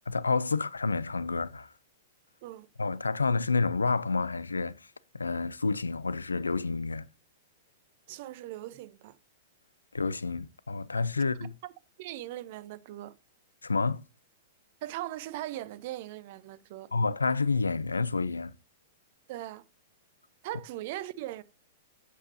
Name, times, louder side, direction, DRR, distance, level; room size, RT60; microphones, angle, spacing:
voice 1, 0.1-1.7 2.8-4.8 5.1-7.1 9.9-11.5 13.6-14.0 16.9-18.6, left 4 dB, 85° left, 0.4 m, -29 dB
voice 2, 8.1-9.2 11.6-11.7 12.0-13.1 14.8-16.9 19.3-19.6 20.4-21.4, right 14 dB, 50° right, 0.6 m, -39 dB
8.3 x 7.3 x 2.6 m
figure-of-eight pair, 105°, 0 cm